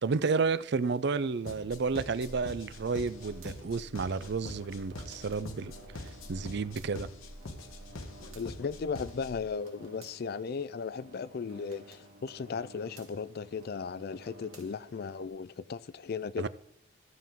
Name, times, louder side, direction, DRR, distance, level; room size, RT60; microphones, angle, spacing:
voice 1, 0.0-5.7 6.3-7.1 16.4-16.5, right 4 dB, 55° right, 0.4 m, -31 dB
sound 1, 1.5-9.5, left 2 dB, 80° left, 1.2 m, -44 dB
sound 2, 1.8-15.3, right 2 dB, 85° right, 2.0 m, -55 dB
voice 2, 8.3-16.5, left 5 dB, 50° left, 0.4 m, -36 dB
15.0 x 7.5 x 3.6 m
head